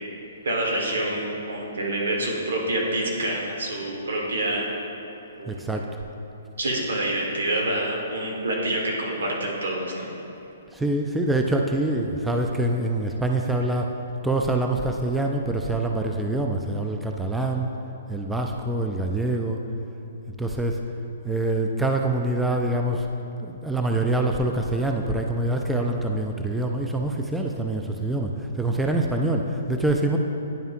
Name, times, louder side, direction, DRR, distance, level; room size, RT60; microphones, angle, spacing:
voice 1, 0.4-4.7 5.4-5.6 6.6-10.1, right 1 dB, 75° right, -1 dB, 1.4 m, -27 dB
voice 2, 5.5-5.9 10.7-13.9 14.2-17.7 18.1-19.6 20.4-20.8 21.2-23.1 23.4-30.2, right 2 dB, 5° right, 2 dB, 0.3 m, -25 dB
10.0 x 5.4 x 2.5 m, 2.9 s
hypercardioid pair, 135°, 0 cm